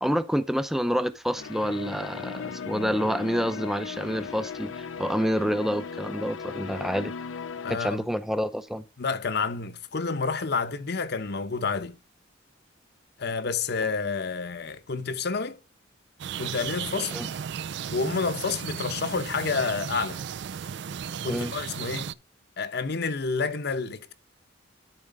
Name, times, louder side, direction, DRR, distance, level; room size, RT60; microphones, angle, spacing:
voice 1, 0.0-7.1 7.7-8.9 17.1-17.3 21.3-21.5, equal, ahead, 0.6 m, -28 dB
sound 1, 1.4-7.8, left 6 dB, 85° left, 0.6 m, -37 dB
voice 2, 7.6-8.0 9.0-12.0 13.2-15.6 16.4-17.2 17.9-20.2 21.2-22.1 22.6-24.1, left 4 dB, 60° left, 0.8 m, -29 dB
sound 2, 16.2-22.1, right 8 dB, 65° right, 0.4 m, -35 dB
12.0 x 4.4 x 3.7 m
head